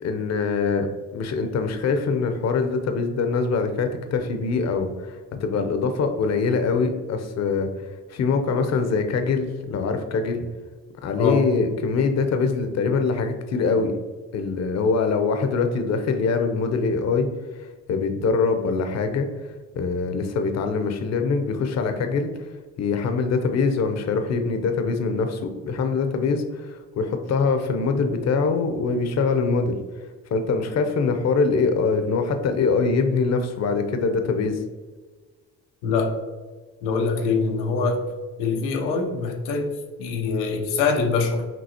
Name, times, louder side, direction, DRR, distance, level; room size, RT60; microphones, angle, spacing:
voice 1, 0.0-7.7 8.1-10.4 11.0-14.0 14.3-17.3 17.6-19.3 19.7-22.5 22.8-29.8 30.3-34.6, left 4 dB, 45° left, 7 dB, 0.7 m, -23 dB
voice 2, 35.8-36.2 36.8-38.1 38.4-41.5, left 4 dB, 85° left, 4 dB, 0.7 m, -24 dB
5.3 x 2.8 x 2.8 m, 1.4 s
supercardioid pair, 70°, 37 cm